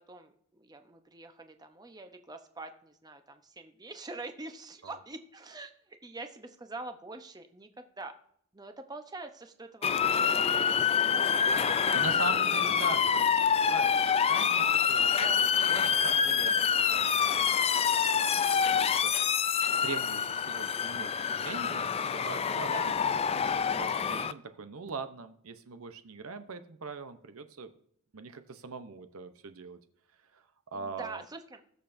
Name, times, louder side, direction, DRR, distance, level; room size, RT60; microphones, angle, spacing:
voice 1, 0.1-7.7 8.0-8.1 8.5-11.1 11.8-12.2 12.6-12.7 15.1-15.5 22.6-22.9 23.8-24.2 30.7-31.6, right 3 dB, 20° right, 7 dB, 0.8 m, -45 dB
Motor vehicle (road) / Siren, 9.8-24.3, left 7 dB, 25° left, 0.3 m, -26 dB
voice 2, 11.7-17.2 17.4-18.5 18.8-19.4 19.8-22.9 23.3-27.7 28.1-29.8 30.3-30.4 30.7-31.2, right 4 dB, 70° right, 9 dB, 0.7 m, -42 dB
20.0 x 6.8 x 2.6 m, 0.65 s
head